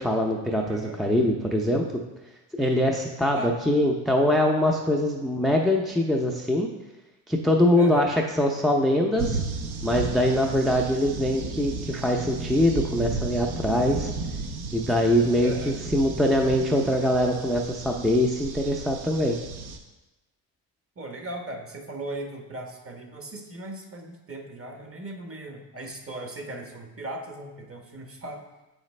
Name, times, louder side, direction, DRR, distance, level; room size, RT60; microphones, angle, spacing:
voice 1, 0.0-1.8 2.5-6.7 7.3-9.4 9.8-14.1 14.7-19.4, left 1 dB, ahead, 1 dB, 0.5 m, -23 dB
voice 2, 0.6-1.0 3.3-3.5 7.8-8.1 15.4-15.7 21.0-28.4, right 1 dB, 30° right, 3 dB, 1.1 m, -38 dB
sound 1, 9.2-19.8, right 3 dB, 55° right, 0.9 m, -34 dB
6.9 x 5.0 x 3.2 m, 1.1 s
supercardioid pair, 75°, 45 cm